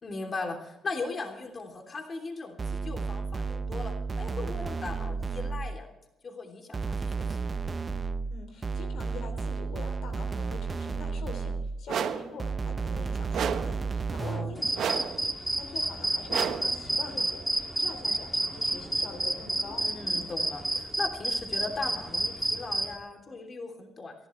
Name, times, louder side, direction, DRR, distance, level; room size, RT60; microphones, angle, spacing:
voice 1, 0.0-5.9 6.2-7.6 14.2-14.5 14.8-14.9 19.8-24.1, left 3 dB, 40° left, 3 dB, 3.1 m, -38 dB
sound 1, 2.6-5.8 6.7-11.9 12.4-14.6, right 4 dB, 30° right, 0.8 m, -32 dB
voice 2, 8.3-19.8, left 4 dB, 70° left, 6 dB, 3.2 m, -44 dB
sound 2, 11.9-12.3 13.3-13.8 14.8-15.2 16.3-16.8, right 8 dB, 70° right, 1.2 m, -31 dB
sound 3, 14.6-22.9, right 1 dB, 10° right, 2.4 m, -30 dB
27.5 x 12.0 x 3.3 m, 0.95 s
cardioid pair, 90°, 0 cm